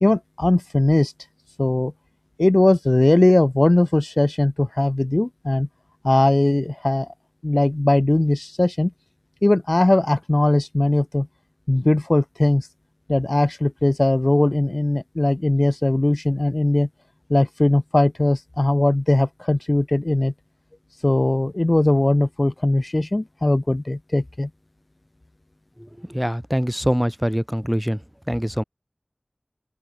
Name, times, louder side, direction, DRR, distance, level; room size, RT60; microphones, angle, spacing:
voice 1, 0.0-1.1 1.6-1.9 2.4-5.7 6.0-7.1 7.4-8.9 9.4-11.3 11.7-12.7 13.1-16.9 17.3-20.3 21.0-24.5, left 1 dB, 45° left, 0.5 m, -19 dB
voice 2, 26.1-28.0 28.3-28.6, equal, 5° right, 1.6 m, -23 dB
open air
wide cardioid pair, 45°, 0 cm